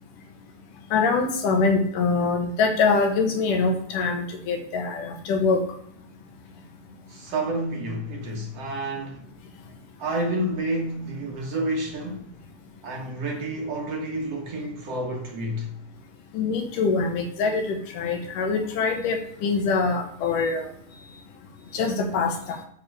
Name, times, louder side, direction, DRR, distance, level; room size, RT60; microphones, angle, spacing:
voice 1, 0.9-5.6 16.3-20.7 21.7-22.3, left 4 dB, 75° left, 2.8 m, -24 dB
voice 2, 7.1-9.2 10.0-12.3 12.8-15.8 17.4-17.5, right 1 dB, 55° right, 2.2 m, -29 dB
8.0 x 7.0 x 4.8 m
omnidirectional pair, 3.9 m